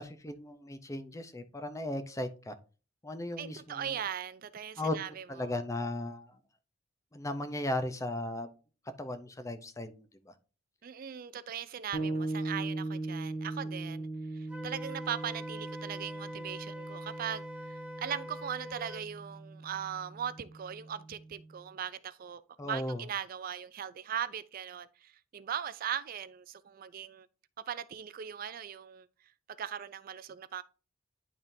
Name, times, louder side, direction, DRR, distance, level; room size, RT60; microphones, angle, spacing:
voice 1, 0.0-2.5 3.0-3.9 4.8-5.0 5.3-6.3 7.1-8.5 9.0-10.3 22.6-23.0, left 1 dB, 15° left, 0.5 m, -36 dB
voice 2, 3.4-5.5 10.8-14.1 14.3-27.3 27.7-29.1 29.6-30.6, right 9 dB, 45° right, 0.3 m, -39 dB
sound 1, 11.9-21.6, right 2 dB, 45° left, 1.2 m, -39 dB
Wind instrument woodwind instrument, 14.5-19.0, left 1 dB, 5° right, 0.9 m, -44 dB
11.0 x 3.6 x 2.6 m
head